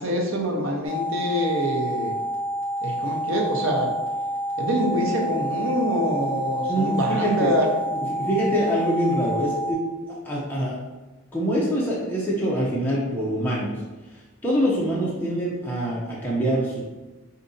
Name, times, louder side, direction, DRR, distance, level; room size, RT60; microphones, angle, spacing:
voice 1, 0.0-2.2 2.8-3.9 4.6-7.7, equal, 70° right, 0 dB, 0.8 m, -25 dB
sound 1, 0.8-9.7, equal, 10° right, 1.0 m, -28 dB
voice 2, 6.7-7.5 7.9-9.8 10.1-10.8 11.3-13.8 14.1-16.8, equal, 10° left, -6 dB, 0.6 m, -25 dB
5.2 x 2.7 x 2.6 m, 1.1 s
head